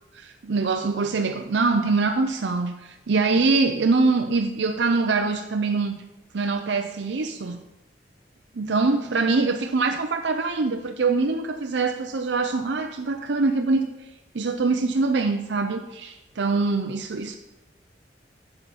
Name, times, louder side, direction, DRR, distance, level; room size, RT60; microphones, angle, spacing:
voice 1, 0.1-6.1 6.3-7.6 8.5-13.9 14.3-17.3, right 3 dB, 80° right, 5 dB, 0.6 m, -24 dB
10.0 x 6.9 x 4.1 m, 0.99 s
head